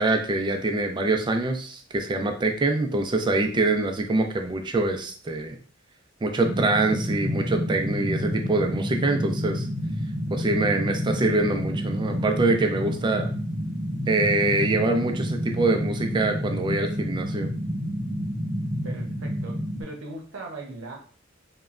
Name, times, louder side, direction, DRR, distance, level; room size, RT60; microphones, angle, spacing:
voice 1, 0.0-5.6 6.2-9.7 10.3-13.3 14.1-17.5, right 2 dB, 25° right, 4 dB, 0.3 m, -24 dB
sound 1, 6.4-19.8, equal, 40° right, 0.8 m, -29 dB
voice 2, 18.8-21.0, right 2 dB, 75° right, 1 dB, 0.7 m, -39 dB
3.0 x 2.1 x 2.4 m, 0.43 s
head